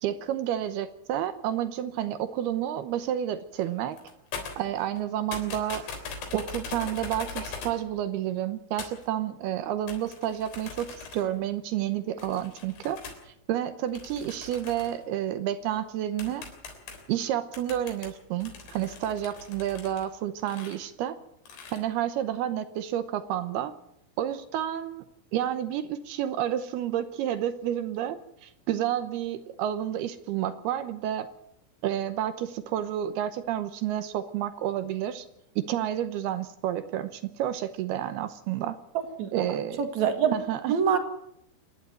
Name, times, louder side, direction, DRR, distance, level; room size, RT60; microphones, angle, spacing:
voice 1, 0.0-4.0 4.6-5.9 6.3-10.9 11.1-13.0 13.3-16.4 17.1-21.2 21.7-23.7 24.2-25.0 25.3-31.3 31.8-35.3 35.6-38.8 39.3-39.8 40.3-40.7, right 11 dB, 75° right, 11 dB, 2.4 m, -30 dB
sound 1, 3.6-3.7 3.9-5.0 5.3-7.8 8.8-9.1 9.9-11.4 12.2-13.2 13.9-15.0 15.7-15.8 16.2-17.1 17.5-20.1 20.4-20.8 21.5-21.8, left 4 dB, 65° left, 5.6 m, -41 dB
voice 2, 39.2-40.4 40.7-41.0, right 7 dB, 50° right, 6 dB, 2.4 m, -26 dB
27.0 x 11.0 x 9.1 m, 0.77 s
omnidirectional pair, 5.6 m